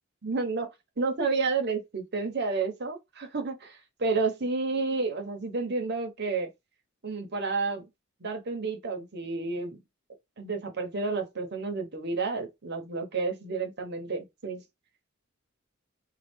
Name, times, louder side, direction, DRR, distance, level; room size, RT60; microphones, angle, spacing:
voice 1, 0.2-0.7 1.0-6.5 7.0-7.8 8.2-9.8 10.4-14.6, right 4 dB, 55° right, 0.8 m, -30 dB
3.1 x 2.3 x 3.4 m
head